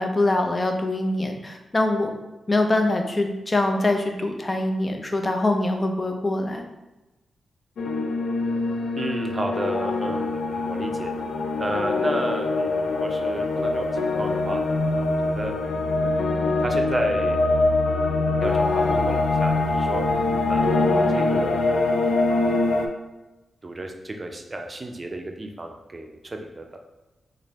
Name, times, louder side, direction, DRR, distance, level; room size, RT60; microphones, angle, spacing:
voice 1, 0.0-2.1 2.5-6.7, left 2 dB, 30° left, 4 dB, 0.6 m, -23 dB
sound 1, 7.8-22.9, left 2 dB, 85° left, 0.3 m, -23 dB
voice 2, 8.9-11.1 11.6-15.5 16.0-17.8 18.0-20.0 20.5-22.1 23.6-26.7, right 1 dB, 35° right, 3 dB, 0.5 m, -33 dB
3.1 x 2.6 x 4.1 m, 1.0 s
cardioid pair, 60°, 0 cm